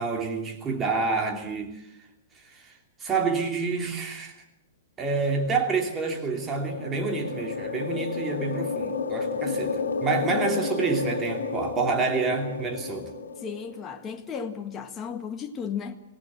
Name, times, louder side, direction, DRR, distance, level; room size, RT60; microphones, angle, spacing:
voice 1, 0.0-1.9 2.3-4.3 5.0-13.1, right 4 dB, 20° right, 2.9 m, -28 dB
sound 1, 6.2-13.9, left 4 dB, 75° left, 2.4 m, -31 dB
voice 2, 13.4-16.0, left 7 dB, 25° left, 1.7 m, -34 dB
25.5 x 18.0 x 7.6 m
figure-of-eight pair, 105°, 0 cm